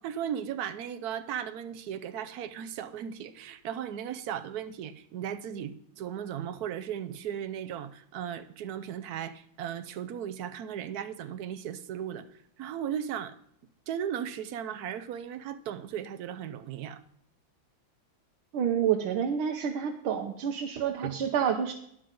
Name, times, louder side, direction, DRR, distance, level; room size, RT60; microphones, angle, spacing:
voice 1, 0.0-12.3 12.6-13.3 13.9-17.0 21.0-21.2, right 9 dB, 65° right, 1.0 m, -36 dB
voice 2, 18.5-21.7, right 8 dB, 90° right, 1.7 m, -28 dB
12.5 x 9.8 x 3.8 m
omnidirectional pair, 2.2 m